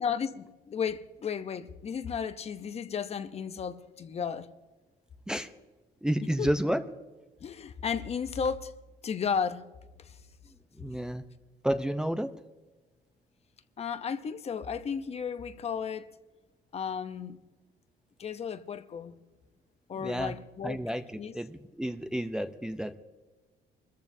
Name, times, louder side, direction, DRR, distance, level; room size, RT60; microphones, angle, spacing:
voice 1, 0.0-4.5 6.4-6.5 7.4-8.7 9.0-9.7 10.0-10.2 13.8-16.1 16.7-17.4 18.2-19.2 19.9-20.8 21.2-21.3, left 6 dB, 40° left, 0.8 m, -34 dB
voice 2, 6.0-6.8 10.8-11.2 11.6-12.3 20.0-20.3 20.6-21.0 21.3-23.0, equal, 5° right, 0.6 m, -30 dB
24.5 x 14.5 x 2.7 m
cardioid pair, 110°, 17 cm